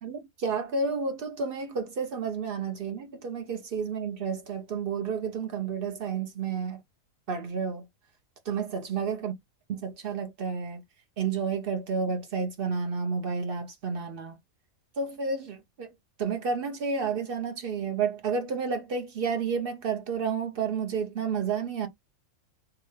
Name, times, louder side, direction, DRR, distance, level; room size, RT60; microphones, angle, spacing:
voice 1, 0.0-6.8 7.3-7.8 8.5-9.3 9.7-10.8 11.2-14.4 15.0-15.9 16.2-21.9, right 5 dB, 60° right, 0.6 m, -31 dB
2.8 x 2.3 x 3.0 m
omnidirectional pair, 1.4 m